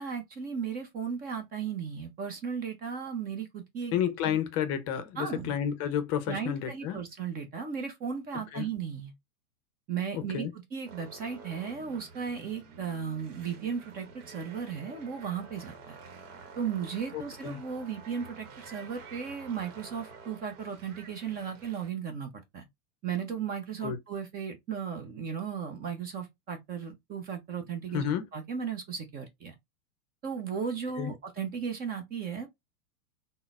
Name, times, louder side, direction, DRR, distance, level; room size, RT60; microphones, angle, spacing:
voice 1, 0.0-4.4 5.2-5.5 6.3-9.1 9.9-16.0 16.6-22.7 23.0-28.0 28.3-29.5 30.2-32.5, right 7 dB, 20° right, 0.5 m, -36 dB
voice 2, 3.9-7.0 8.5-8.7 10.3-10.5 17.4-17.6 23.8-24.0 27.9-28.2 31.0-31.1, left 9 dB, 35° left, 0.6 m, -30 dB
sound 1, 10.8-21.9, right 5 dB, 60° right, 1.0 m, -49 dB
3.7 x 2.1 x 2.4 m
hypercardioid pair, 105°, 43 cm